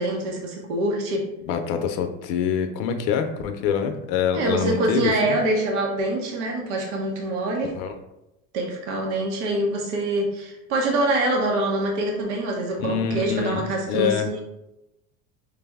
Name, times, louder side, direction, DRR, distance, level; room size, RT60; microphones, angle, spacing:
voice 1, 0.0-1.3 4.3-7.7 8.5-14.4, right 1 dB, 90° right, 0 dB, 0.9 m, -25 dB
voice 2, 1.5-5.4 7.7-7.9 12.8-14.3, left 7 dB, 70° left, 7 dB, 0.5 m, -25 dB
5.0 x 2.0 x 3.4 m, 0.90 s
supercardioid pair, 135°, 35 cm